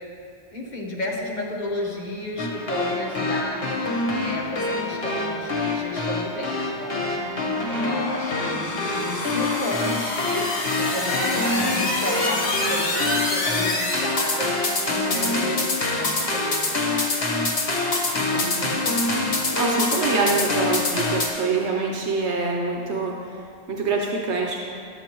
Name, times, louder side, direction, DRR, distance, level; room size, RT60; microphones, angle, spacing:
voice 1, 0.5-3.7 4.2-7.1 7.6-16.6, left 1 dB, 40° left, -2 dB, 1.2 m, -32 dB
sound 1, 2.4-21.3, left 2 dB, 65° left, 1.4 m, -25 dB
voice 2, 18.1-18.9 19.1-23.4 23.7-24.6, right 3 dB, 80° right, 0 dB, 1.1 m, -26 dB
11.5 x 8.4 x 3.0 m, 2.5 s
omnidirectional pair, 1.1 m